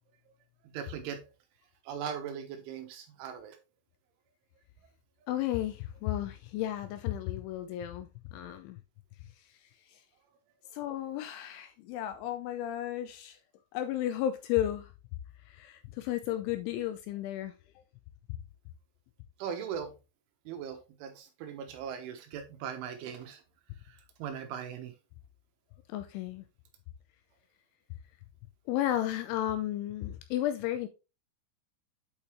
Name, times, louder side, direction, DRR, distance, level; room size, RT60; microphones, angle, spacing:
voice 1, 0.6-1.3 1.8-3.6 19.4-19.9 20.5-23.4 23.9-24.9, right 8 dB, 75° right, 3.4 m, -39 dB
voice 2, 5.3-8.8 9.9-10.0 10.7-13.4 13.7-14.9 15.5-17.5 25.9-26.4 28.7-30.9, left 12 dB, 80° left, 2.8 m, -33 dB
8.5 x 5.4 x 3.1 m
omnidirectional pair, 5.9 m